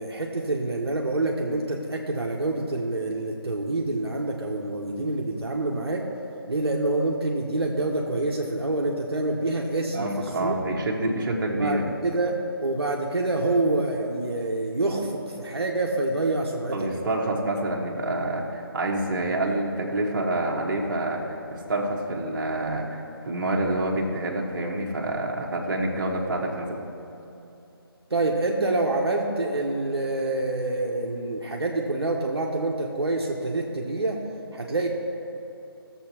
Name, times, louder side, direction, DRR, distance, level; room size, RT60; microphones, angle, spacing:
voice 1, 0.0-6.0 6.5-10.5 11.5-16.8 28.1-34.2 34.5-34.9, right 2 dB, 80° right, -1 dB, 1.1 m, -27 dB
voice 2, 9.9-11.9 16.7-26.8, right 1 dB, 50° right, -1 dB, 1.4 m, -27 dB
16.5 x 7.3 x 2.9 m, 2.9 s
figure-of-eight pair, 155°, 13 cm